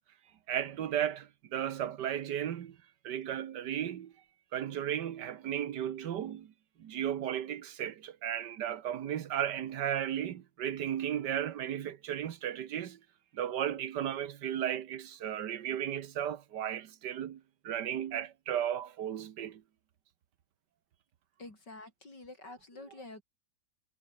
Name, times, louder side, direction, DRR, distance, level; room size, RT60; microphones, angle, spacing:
voice 1, 0.5-2.8 3.0-4.1 4.5-6.5 6.8-13.0 13.3-19.6, right 10 dB, 80° right, 1.7 m, -35 dB
voice 2, 21.4-23.2, left 2 dB, 90° left, 7.4 m, -48 dB
omnidirectional pair, 1.8 m